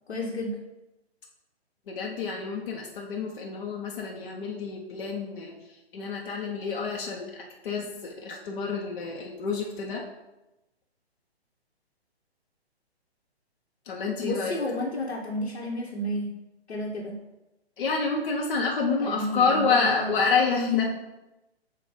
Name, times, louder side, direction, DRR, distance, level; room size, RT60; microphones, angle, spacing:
voice 1, 0.1-0.6 14.2-16.3 16.7-17.1 19.0-20.1 20.5-20.9, left 1 dB, 80° left, -4 dB, 1.2 m, -31 dB
voice 2, 1.9-5.5 5.9-10.0 13.9-14.6 17.8-20.9, left 5 dB, 50° left, -1 dB, 1.0 m, -28 dB
7.1 x 2.5 x 5.1 m, 0.98 s
figure-of-eight pair, 130°, 32 cm